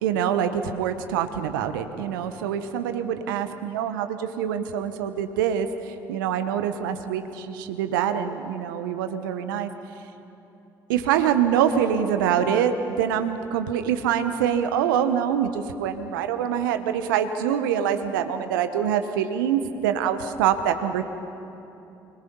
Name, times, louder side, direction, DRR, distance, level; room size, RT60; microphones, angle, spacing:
voice 1, 0.0-9.7 10.9-21.0, right 9 dB, 80° right, 9 dB, 1.2 m, -25 dB
26.0 x 24.0 x 5.5 m, 2.9 s
hypercardioid pair, 50°, 11 cm